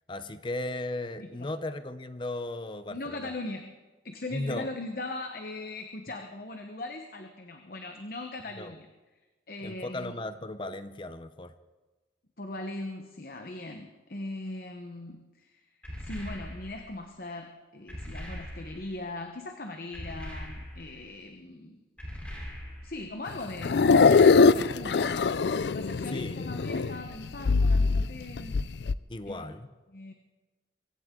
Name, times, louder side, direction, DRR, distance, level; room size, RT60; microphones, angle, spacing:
voice 1, 0.1-3.3 4.3-4.7 8.6-8.7 9.6-11.5 26.1-26.5 29.1-29.7, left 2 dB, 30° left, 11 dB, 0.7 m, -36 dB
voice 2, 2.9-3.7 4.0-8.9 9.5-10.1 12.4-15.6 16.0-21.8 22.8-25.3 25.7-28.6 29.3-29.4 29.9-30.1, left 2 dB, 55° left, 5 dB, 1.0 m, -39 dB
sound 1, 15.8-16.9 17.9-19.0 19.9-21.0 22.0-23.1, equal, 5° left, 3.8 m, -41 dB
sound 2, 23.3-27.1 27.3-28.9, left 4 dB, 75° left, 0.5 m, -22 dB
24.0 x 16.0 x 3.8 m, 1.2 s
head